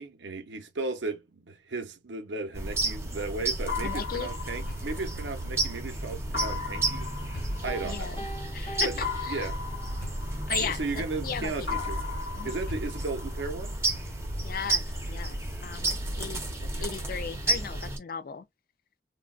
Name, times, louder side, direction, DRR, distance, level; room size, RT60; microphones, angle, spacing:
voice 1, 0.0-7.1 7.6-8.2 8.8-9.6 10.6-12.0 12.4-13.8 16.6-16.9, right 3 dB, 85° right, 0.7 m, -35 dB
sound 1, 2.5-18.0, right 2 dB, 15° right, 0.7 m, -32 dB
sound 2, 3.7-5.7 6.3-8.4 9.0-11.3 11.7-13.7, left 5 dB, 70° left, 1.8 m, -37 dB
voice 2, 3.8-4.3 7.8-8.3 8.5-9.5 10.5-11.9 12.3-12.6 14.4-16.4 16.8-18.5, left 6 dB, 50° left, 0.4 m, -36 dB
Piano, 7.7-10.1, right 1 dB, 25° left, 0.9 m, -43 dB
3.4 x 2.2 x 2.3 m
head